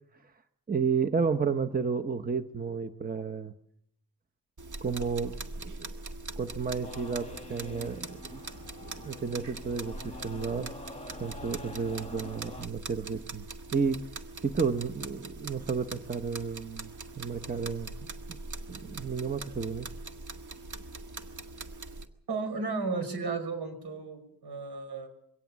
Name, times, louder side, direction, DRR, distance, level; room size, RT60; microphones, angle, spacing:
voice 1, 0.7-3.5 4.8-5.3 5.6-6.0 6.4-8.4 8.8-10.7 11.2-13.4 13.7-14.0 14.4-17.9 18.3-18.4 18.7-19.9, right 5 dB, 20° right, 8 dB, 0.9 m, -32 dB
sound 1, 4.6-22.1, right 3 dB, 50° right, 1.8 m, -42 dB
sound 2, 6.8-12.7, left 2 dB, 15° left, 1.2 m, -46 dB
voice 2, 22.3-25.1, right 4 dB, 75° right, 7 dB, 5.5 m, -34 dB
23.5 x 17.5 x 7.4 m, 0.75 s
wide cardioid pair, 125°, 39 cm